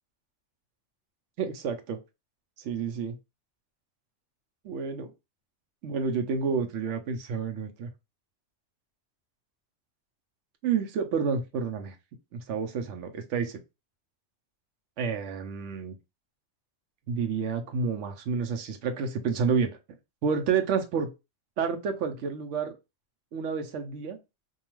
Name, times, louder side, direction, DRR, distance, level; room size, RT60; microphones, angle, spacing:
voice 1, 1.4-2.0 2.6-3.2 4.6-5.1 5.8-7.9 10.6-11.9 12.3-13.6 15.0-16.0 17.1-19.7 20.2-21.1 21.6-22.7 23.3-24.2, right 6 dB, 85° right, 6 dB, 0.9 m, -29 dB
2.7 x 2.3 x 3.0 m, 0.25 s
omnidirectional pair, 1.2 m